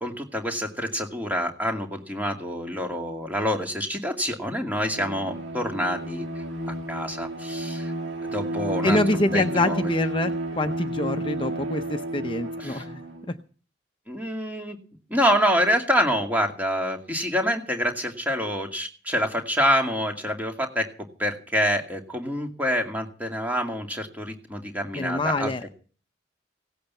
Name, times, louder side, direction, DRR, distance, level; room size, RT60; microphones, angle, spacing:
voice 1, 0.0-6.3 6.6-7.9 8.2-9.0 9.3-9.9 12.6-12.8 14.1-14.8 15.1-20.9 21.2-25.7, equal, 10° right, 3 dB, 2.3 m, -26 dB
Bowed string instrument, 4.8-13.3, right 1 dB, 85° right, 2.4 m, -31 dB
voice 2, 8.8-10.3 10.6-13.0 24.9-25.7, left 2 dB, 30° left, 7 dB, 0.7 m, -25 dB
17.0 x 8.5 x 7.1 m, 0.40 s
head